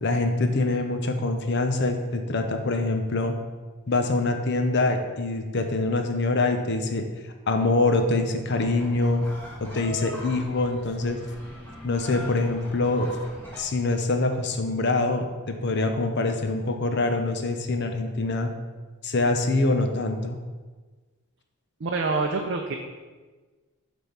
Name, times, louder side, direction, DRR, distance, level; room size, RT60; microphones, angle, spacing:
voice 1, 0.0-3.4 3.9-7.1 7.5-9.2 9.6-11.2 11.8-13.1 13.6-18.5 19.0-20.4, left 2 dB, 50° left, 6 dB, 0.7 m, -24 dB
sound 1, 8.5-13.6, left 1 dB, 10° left, 1.5 m, -41 dB
voice 2, 21.8-22.7, right 3 dB, 55° right, 2 dB, 0.5 m, -26 dB
7.5 x 3.6 x 5.6 m, 1.3 s
head